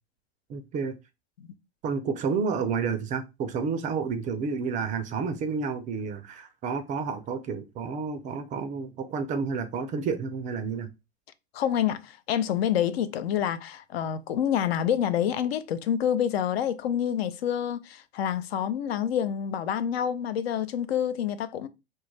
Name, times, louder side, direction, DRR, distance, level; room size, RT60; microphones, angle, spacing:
voice 1, 0.5-0.9 1.8-10.9, right 5 dB, 25° right, 0.3 m, -30 dB
voice 2, 11.5-21.7, left 9 dB, 70° left, 0.4 m, -27 dB
2.3 x 2.1 x 3.1 m
hypercardioid pair, 95°, 32 cm